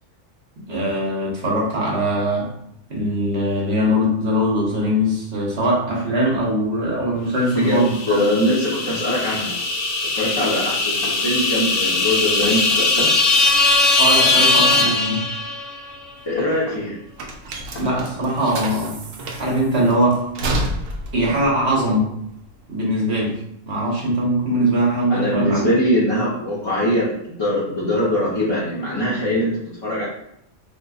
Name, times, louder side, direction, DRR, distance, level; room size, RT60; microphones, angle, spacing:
voice 1, 0.7-2.5 2.9-8.2 14.0-15.2 17.8-19.0 19.4-20.2 21.1-22.1 22.7-23.4 23.6-25.6 29.2-29.3, equal, 55° right, -4 dB, 1.3 m, -21 dB
voice 2, 7.5-9.6 10.0-13.1 16.3-17.0 25.1-30.1, left 1 dB, 30° left, -9 dB, 0.6 m, -22 dB
sound 1, 7.8-15.8, left 3 dB, 75° left, 0.9 m, -20 dB
sound 2, 9.5-9.6 10.7-11.2 12.4-13.2 14.3-15.0 16.4-16.8 17.7-17.9, left 1 dB, 45° left, 1.1 m, -36 dB
sound 3, 15.9-22.7, right 1 dB, 85° right, 1.0 m, -30 dB
3.9 x 2.7 x 2.4 m, 0.73 s
omnidirectional pair, 1.3 m